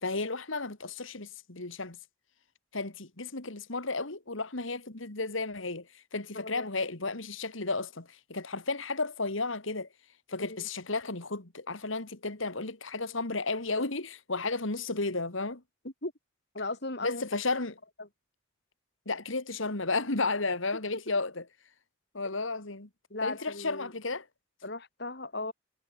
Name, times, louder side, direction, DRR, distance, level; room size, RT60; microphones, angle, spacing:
voice 1, 0.0-2.0 2.7-9.9 10.3-15.6 17.0-17.8 19.1-21.4 22.1-22.9 23.2-24.3, left 3 dB, 75° left, 2.5 m, -33 dB
voice 2, 6.1-6.7 10.4-10.7 15.8-16.1 16.5-17.2 18.0-18.1 20.9-21.0 23.1-23.9 24.6-25.5, left 2 dB, 55° left, 4.3 m, -37 dB
head